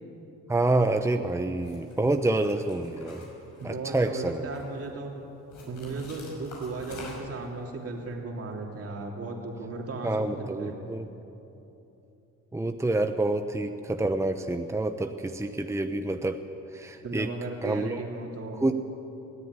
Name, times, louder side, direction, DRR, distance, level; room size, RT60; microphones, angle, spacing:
voice 1, 0.5-3.3 3.6-4.4 10.0-11.1 12.5-16.4 16.7-17.3 17.6-18.0 18.6-18.7, right 2 dB, 10° right, 7 dB, 0.9 m, -27 dB
sound 1, 1.6-1.9 2.4-3.9 4.3-4.9 5.5-7.4, left 3 dB, 75° left, 6.0 m, -46 dB
voice 2, 3.6-5.1 5.6-10.7 17.0-18.6, right 3 dB, 50° right, 1 dB, 3.0 m, -36 dB
20.5 x 13.5 x 9.7 m, 3.0 s
cardioid pair, 90°, 30 cm